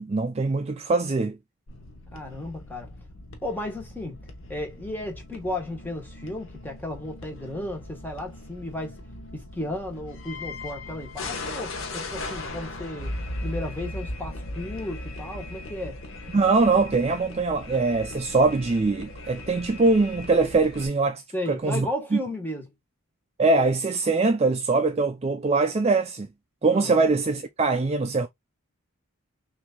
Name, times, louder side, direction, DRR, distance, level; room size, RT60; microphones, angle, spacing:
voice 1, 0.0-1.4 16.3-21.2 21.5-22.2 23.4-26.3 26.6-28.3, right 3 dB, 30° right, 0.4 m, -22 dB
sound 1, 1.7-20.9, left 2 dB, 65° left, 0.9 m, -38 dB
voice 2, 2.1-2.9 3.4-4.2 4.5-9.0 9.3-13.2 13.4-16.0 21.3-22.7 26.7-27.1, left 1 dB, 10° left, 1.2 m, -34 dB
6.0 x 2.7 x 2.2 m
head